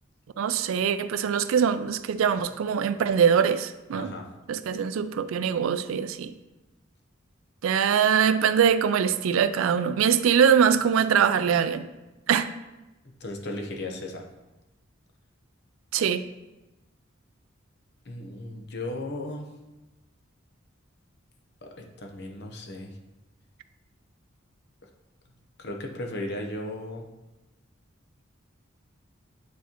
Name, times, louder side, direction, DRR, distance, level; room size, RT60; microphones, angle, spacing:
voice 1, 0.4-4.1 4.5-6.3 7.6-11.9 12.3-12.5 15.9-16.2, right 7 dB, 75° right, 11 dB, 0.3 m, -23 dB
voice 2, 3.9-4.3 13.0-14.2 18.0-19.5 21.6-23.0 25.6-27.1, left 1 dB, 55° left, 2 dB, 0.8 m, -36 dB
9.4 x 4.2 x 2.9 m, 1.0 s
head